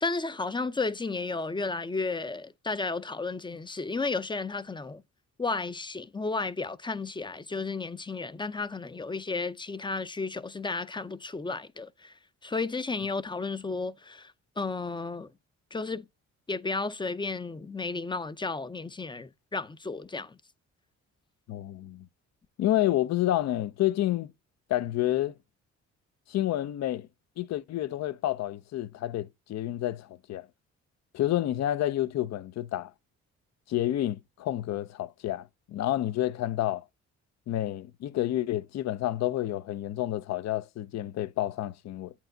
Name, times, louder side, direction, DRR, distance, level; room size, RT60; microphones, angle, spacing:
voice 1, 0.0-5.0 5.4-12.1 12.4-15.3 15.7-16.1 16.5-20.4, left 3 dB, 15° left, 0.5 m, -33 dB
voice 2, 21.5-22.0 22.6-24.3 24.7-25.3 26.3-27.1 27.4-30.5 31.1-32.9 33.7-36.8 37.5-42.1, left 13 dB, 60° left, 0.6 m, -29 dB
8.1 x 4.5 x 3.9 m
cardioid pair, 90°, 30 cm